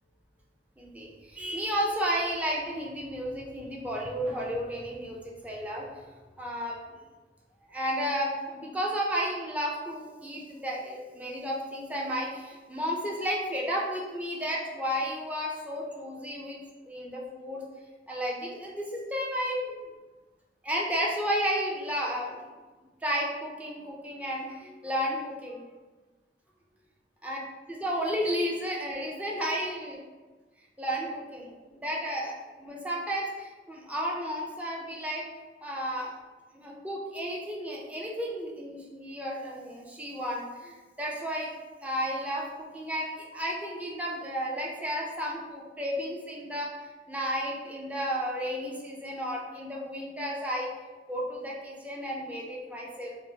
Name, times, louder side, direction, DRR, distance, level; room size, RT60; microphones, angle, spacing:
voice 1, 0.8-5.9 6.4-6.8 7.7-16.6 16.8-17.6 18.1-19.9 20.6-22.4 23.0-25.6 27.2-27.4 27.7-30.0 30.8-31.5 31.8-35.2 35.6-36.1 36.5-41.5 41.8-46.7 47.1-50.7 51.1-53.2, equal, 10° right, -3 dB, 0.5 m, -32 dB
4.4 x 2.0 x 2.8 m, 1.3 s
head